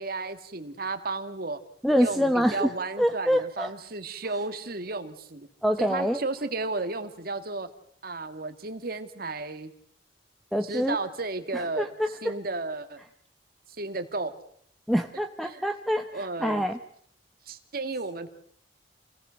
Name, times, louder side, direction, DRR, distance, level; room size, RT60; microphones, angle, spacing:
voice 1, 0.0-1.6 2.0-5.5 5.8-7.7 8.0-9.7 10.6-11.9 12.2-13.0 13.8-14.4 15.4-15.6 16.1-16.6 17.5-18.3, right 3 dB, 55° right, 9 dB, 2.0 m, -33 dB
voice 2, 1.8-2.7 3.0-3.7 5.6-6.2 10.5-11.0 11.5-12.3 14.9-16.8, equal, ahead, 7 dB, 1.0 m, -26 dB
28.0 x 18.0 x 6.4 m, 0.67 s
head